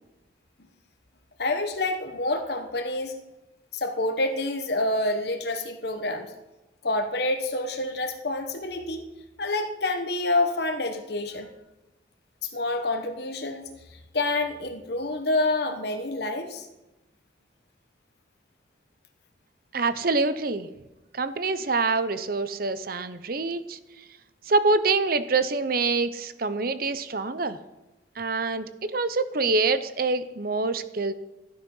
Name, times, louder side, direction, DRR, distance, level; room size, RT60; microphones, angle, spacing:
voice 1, 1.4-3.1 3.7-6.3 6.8-9.0 9.4-11.5 12.4-13.7 14.1-16.7, left 2 dB, 55° left, 5 dB, 1.1 m, -27 dB
voice 2, 19.7-20.7 21.1-23.8 24.5-27.6 28.2-31.1, right 3 dB, 50° right, 13 dB, 0.8 m, -25 dB
13.5 x 12.0 x 5.5 m, 1.0 s
head